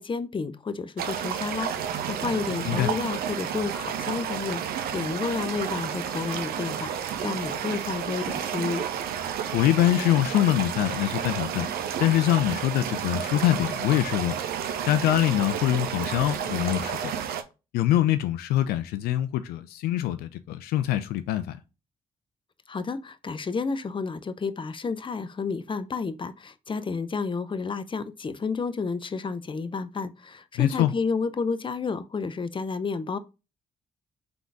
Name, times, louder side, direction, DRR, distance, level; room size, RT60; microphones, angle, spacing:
voice 1, 0.0-8.9 22.7-33.2, left 4 dB, 30° left, 0.6 m, -31 dB
sound 1, 1.0-17.4, right 8 dB, 75° right, 0.6 m, -31 dB
voice 2, 9.5-11.7 12.0-14.4 14.9-17.1 17.7-21.6 30.6-30.9, left 13 dB, 80° left, 0.4 m, -24 dB
3.9 x 3.8 x 3.4 m
hypercardioid pair, 45°, 16 cm